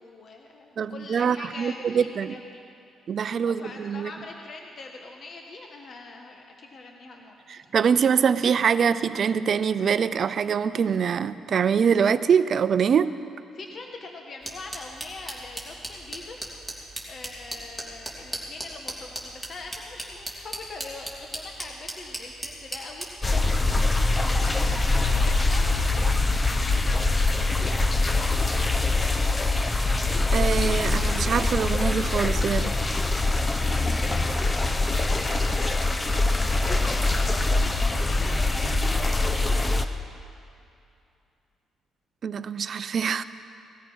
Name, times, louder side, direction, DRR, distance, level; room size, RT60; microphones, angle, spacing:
voice 1, 0.0-2.6 3.4-7.6 13.5-16.4 17.1-23.5 24.0-26.0 26.4-29.0 34.0-35.8 36.6-39.7, left 3 dB, 50° left, 2 dB, 1.3 m, -43 dB
voice 2, 0.8-2.3 3.1-4.1 7.5-13.1 30.3-32.7 42.2-43.2, right 7 dB, 55° right, 14 dB, 0.5 m, -24 dB
sound 1, 14.4-34.3, right 1 dB, 5° left, 2.9 m, -42 dB
sound 2, 23.2-39.8, left 2 dB, 20° left, 0.8 m, -23 dB
18.5 x 13.5 x 5.5 m, 2.6 s
cardioid pair, 90°, 0 cm